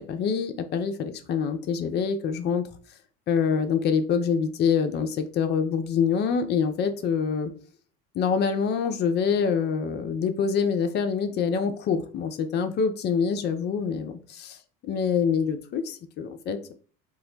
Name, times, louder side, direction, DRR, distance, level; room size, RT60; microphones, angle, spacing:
voice 1, 0.0-2.7 3.3-7.5 8.1-14.1 14.4-14.5 14.8-16.7, left 6 dB, 25° left, 7 dB, 0.3 m, -25 dB
2.3 x 2.0 x 3.8 m, 0.40 s
hypercardioid pair, 70°, 49 cm